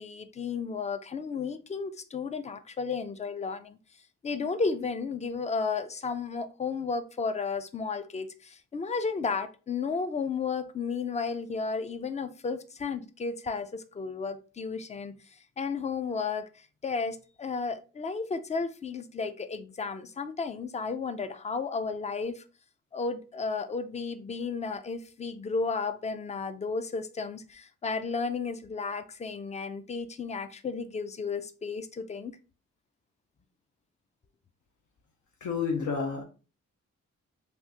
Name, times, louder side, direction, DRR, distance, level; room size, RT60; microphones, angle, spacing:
voice 1, 0.0-3.8 4.2-15.2 15.6-22.4 22.9-32.4, left 4 dB, 25° left, 0.4 m, -33 dB
voice 2, 35.4-36.2, left 5 dB, 75° left, 0.6 m, -30 dB
3.5 x 2.5 x 2.7 m
cardioid pair, 85°, 30 cm